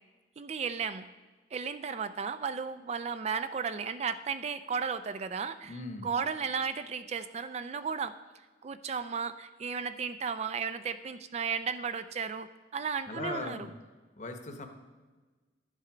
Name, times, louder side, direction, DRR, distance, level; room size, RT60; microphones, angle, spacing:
voice 1, 0.4-1.1 1.5-5.7 6.0-8.2 8.6-13.7, right 6 dB, 35° right, 11 dB, 0.3 m, -34 dB
voice 2, 5.6-6.1 13.1-13.7 14.2-14.7, left 2 dB, 45° left, 6 dB, 1.0 m, -39 dB
11.5 x 7.5 x 5.0 m, 1.3 s
head